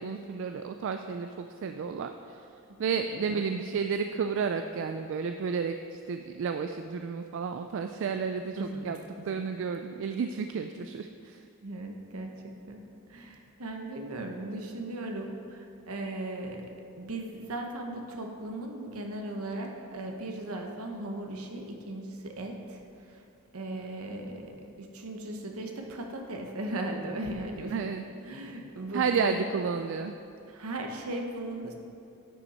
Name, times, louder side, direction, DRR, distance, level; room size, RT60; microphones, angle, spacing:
voice 1, 0.0-2.4 2.8-9.0 9.2-11.4 27.7-28.0 28.9-30.1, right 5 dB, 60° right, 7 dB, 0.3 m, -31 dB
voice 2, 3.2-3.5 8.6-8.9 9.2-9.5 11.6-12.8 13.1-16.7 17.0-22.8 23.1-23.2 23.5-27.9 28.2-29.4 30.5-31.7, right 1 dB, 75° right, 3 dB, 1.0 m, -37 dB
10.5 x 5.8 x 4.2 m, 2.5 s
head